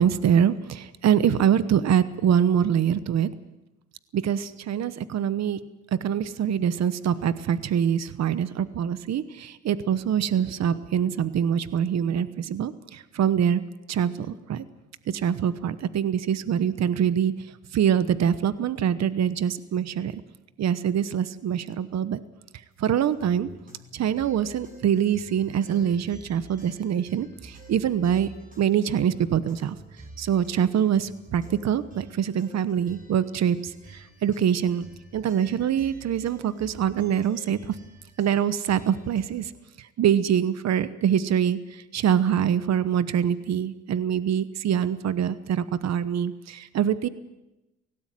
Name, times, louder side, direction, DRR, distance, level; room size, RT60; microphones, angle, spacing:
voice 1, 0.0-3.3 4.1-5.6 5.9-13.6 13.9-14.6 15.1-17.3 17.7-20.2 20.6-22.2 22.8-23.5 23.9-28.3 28.6-29.8 30.2-34.9 35.1-37.6 38.2-39.5 40.0-47.1, right 9 dB, 60° right, 14 dB, 1.1 m, -24 dB
sound 1, 23.0-39.5, right 2 dB, 25° right, 6.9 m, -49 dB
17.5 x 17.5 x 9.3 m, 0.99 s
cardioid pair, 90°, 30 cm